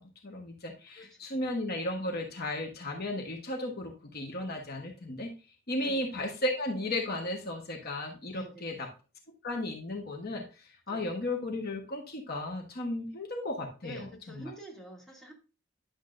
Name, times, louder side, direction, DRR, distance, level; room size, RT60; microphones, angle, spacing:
voice 1, 0.0-5.3 5.7-8.7 9.4-14.5, left 1 dB, 50° left, 2 dB, 1.2 m, -35 dB
voice 2, 0.9-1.4 5.8-6.1 8.3-8.8 10.9-11.1 13.8-15.3, equal, ahead, -3 dB, 2.3 m, -47 dB
10.5 x 7.1 x 2.6 m, 0.33 s
head